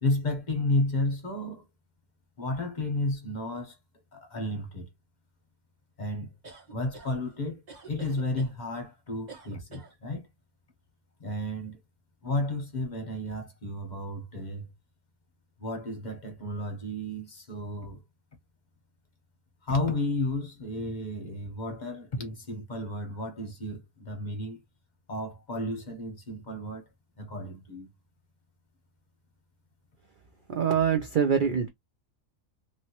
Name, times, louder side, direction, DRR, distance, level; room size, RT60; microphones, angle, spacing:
voice 1, 0.0-1.7 2.4-3.7 4.1-4.9 6.0-6.3 6.7-7.6 7.9-10.2 11.2-11.8 12.2-14.7 15.6-18.0 19.6-24.6 25.1-26.8 27.2-27.9, left 2 dB, 35° left, 0.9 m, -32 dB
sound 1, 6.4-7.1 7.7-8.5 9.3-9.9, right 4 dB, 35° right, 1.2 m, -46 dB
voice 2, 30.5-31.7, right 7 dB, 75° right, 0.4 m, -24 dB
2.9 x 2.8 x 2.9 m
omnidirectional pair, 1.5 m